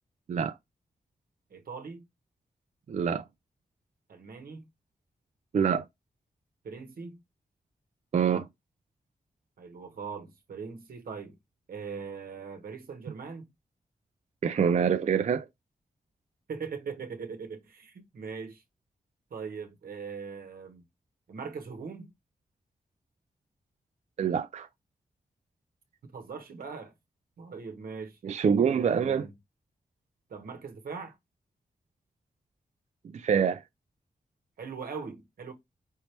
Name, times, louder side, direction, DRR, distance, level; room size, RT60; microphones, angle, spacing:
voice 1, 1.5-2.0 4.1-4.7 6.6-7.2 9.6-11.4 11.7-13.5 16.5-18.6 19.3-20.8 21.3-22.1 26.0-26.9 27.4-28.2 28.6-29.3 30.3-31.1 34.6-35.5, right 5 dB, 85° right, 1.0 m, -40 dB
voice 2, 2.9-3.2 5.5-5.8 8.1-8.5 14.4-15.5 24.2-24.7 28.2-29.3 33.1-33.6, right 7 dB, 50° right, 0.4 m, -25 dB
5.4 x 3.0 x 3.2 m
cardioid pair, 75°, 15 cm